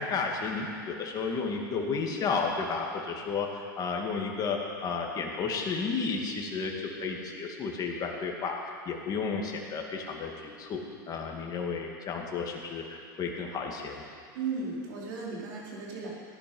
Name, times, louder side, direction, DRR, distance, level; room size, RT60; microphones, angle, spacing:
voice 1, 0.0-14.1, left 4 dB, 35° left, 1 dB, 2.4 m, -32 dB
voice 2, 14.3-16.1, right 4 dB, 75° right, -4 dB, 4.3 m, -35 dB
17.0 x 11.0 x 5.5 m, 2.2 s
hypercardioid pair, 105°, 11 cm